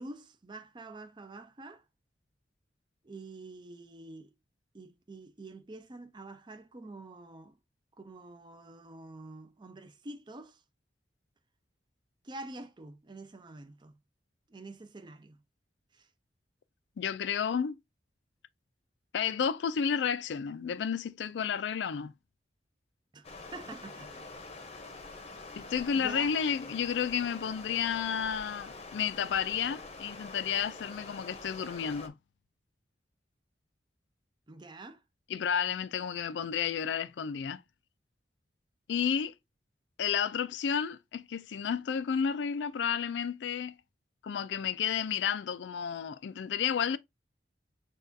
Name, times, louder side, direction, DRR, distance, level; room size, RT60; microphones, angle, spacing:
voice 1, 0.0-1.8 3.0-4.3 4.7-7.6 8.0-10.6 12.2-14.0 14.5-15.4 15.9-16.1 23.1-24.3 25.3-25.6 26.0-26.3 34.5-35.0, right 2 dB, 25° right, 0.5 m, -47 dB
voice 2, 17.0-17.8 19.1-22.1 25.6-32.1 35.3-37.6 38.9-39.3 40.0-43.7 44.2-47.0, left 7 dB, 80° left, 0.4 m, -31 dB
Stream, 23.2-32.1, left 3 dB, 35° left, 0.7 m, -46 dB
6.4 x 2.4 x 2.6 m
head